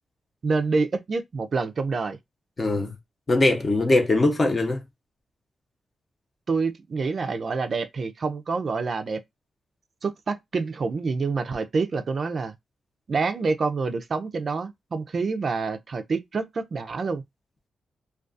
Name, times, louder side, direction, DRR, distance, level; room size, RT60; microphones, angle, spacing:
voice 1, 0.4-2.2 6.5-9.2 10.0-12.5 13.1-17.2, right 4 dB, 50° right, 0.4 m, -27 dB
voice 2, 2.6-2.9 3.3-4.8, left 2 dB, 35° left, 0.7 m, -21 dB
2.3 x 2.3 x 2.5 m
cardioid pair, 100°, 0 cm